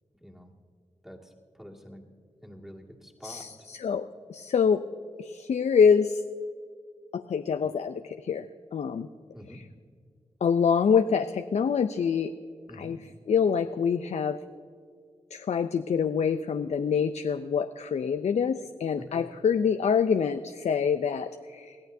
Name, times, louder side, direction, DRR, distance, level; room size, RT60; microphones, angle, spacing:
voice 1, 0.2-0.5 1.0-2.0 2.4-3.4 9.3-9.6 12.7-13.0 19.0-19.2, equal, 5° right, 0 dB, 2.0 m, -46 dB
voice 2, 3.2-4.8 5.2-6.2 7.1-8.5 8.7-9.1 10.4-12.3 12.8-13.0 13.3-14.4 15.3-21.8, left 6 dB, 70° left, 10 dB, 0.4 m, -25 dB
21.5 x 14.5 x 2.7 m, 2.1 s
cardioid pair, 70°, 12 cm